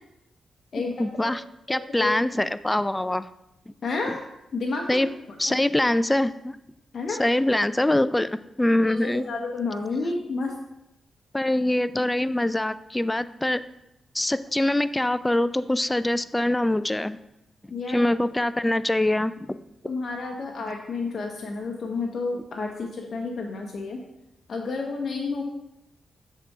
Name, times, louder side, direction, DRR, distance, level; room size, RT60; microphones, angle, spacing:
voice 1, 0.8-3.3 4.1-4.2 4.9-5.1 5.4-6.6 7.1-9.2 11.3-13.6 14.1-17.2 17.9-19.6, left 1 dB, 15° left, 14 dB, 0.3 m, -24 dB
voice 2, 1.7-2.1 3.8-4.2 4.5-5.0 5.5-5.6 6.9-7.2 8.9-10.5 17.7-18.1 19.8-24.0 24.5-25.4, left 3 dB, 60° left, 0 dB, 0.7 m, -30 dB
6.6 x 3.6 x 4.7 m, 0.87 s
supercardioid pair, 50°, 0 cm